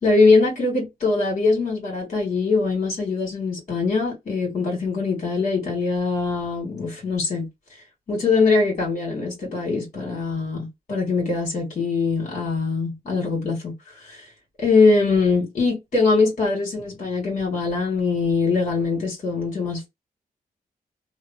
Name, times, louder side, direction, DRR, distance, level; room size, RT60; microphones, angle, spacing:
voice 1, 0.0-7.5 8.1-14.2 14.6-19.9, left 4 dB, 50° left, 1.8 m, -22 dB
3.1 x 2.1 x 2.6 m
cardioid pair, 95°, 15 cm